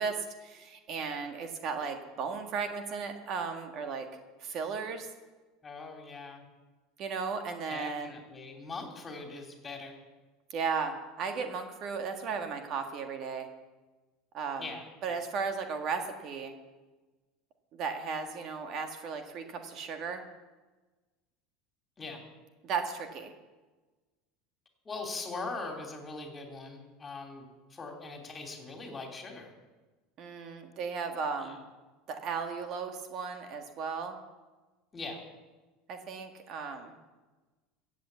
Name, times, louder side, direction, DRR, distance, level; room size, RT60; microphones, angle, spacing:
voice 1, 0.0-4.1 4.4-5.1 7.0-8.2 10.5-13.5 14.3-14.7 15.0-16.5 17.7-20.2 22.6-23.3 30.2-31.6 32.1-34.2 35.9-36.9, right 5 dB, 50° right, 6 dB, 1.6 m, -35 dB
voice 2, 5.6-6.4 7.7-9.9 14.6-14.8 22.0-22.2 24.8-29.5 31.4-31.6 34.9-35.2, left 3 dB, 20° left, 3 dB, 3.1 m, -41 dB
14.5 x 8.2 x 8.1 m, 1.2 s
supercardioid pair, 115°, 0 cm